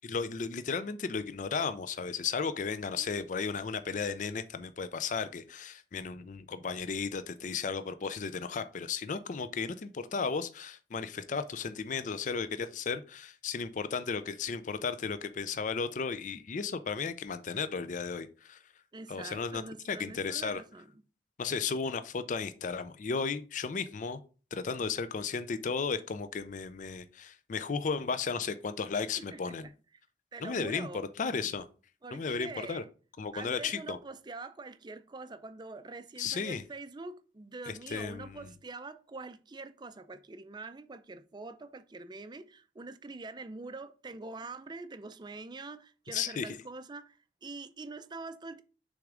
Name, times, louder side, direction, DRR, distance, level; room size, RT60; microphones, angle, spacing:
voice 1, 0.1-18.6 19.1-20.6 21.4-24.2 24.5-29.7 30.4-30.9 31.2-31.7 32.1-32.8 33.2-34.0 36.2-36.6 37.7-38.4 46.1-46.6, left 5 dB, 45° left, 0.4 m, -34 dB
voice 2, 2.9-3.2 18.9-21.0 29.2-29.7 30.3-31.1 32.0-32.9 33.3-48.6, right 3 dB, 25° right, 0.4 m, -45 dB
6.3 x 3.6 x 5.0 m
head